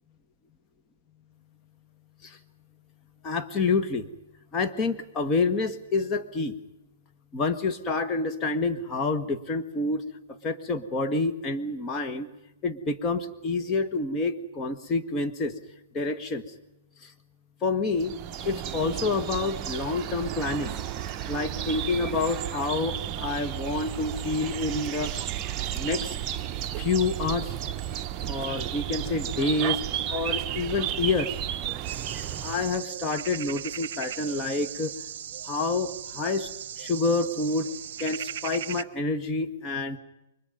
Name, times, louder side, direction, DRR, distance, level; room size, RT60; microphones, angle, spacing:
voice 1, 3.2-4.1 4.5-6.6 7.3-12.3 12.6-15.6 15.9-16.4 17.0-17.1 17.6-18.1 18.4-20.7 21.3-25.2 25.7-26.2 26.8-27.5 28.3-29.8 30.1-31.4 32.4-35.0 35.4-36.5 36.8-37.7 38.0-40.0, left 3 dB, 25° left, 5 dB, 1.9 m, -28 dB
sound 1, 18.0-32.8, right 11 dB, 30° right, 0.8 m, -33 dB
sound 2, 31.8-38.8, right 9 dB, 55° right, 0.9 m, -38 dB
29.0 x 24.0 x 5.4 m, 0.87 s
hypercardioid pair, 125°, 0 cm